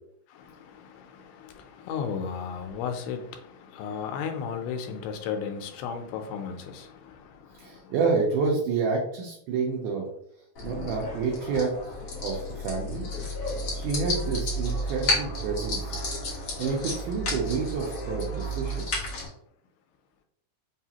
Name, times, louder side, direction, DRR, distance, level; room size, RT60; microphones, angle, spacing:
voice 1, 0.3-7.9, left 6 dB, 85° left, 6 dB, 2.5 m, -35 dB
voice 2, 7.5-10.1 10.6-13.1 13.7-16.0 16.3-19.2, right 4 dB, 80° right, -2 dB, 1.8 m, -29 dB
sound 1, 10.6-19.3, left 1 dB, 60° left, 1.6 m, -32 dB
5.5 x 2.4 x 2.8 m, 0.70 s
omnidirectional pair, 4.2 m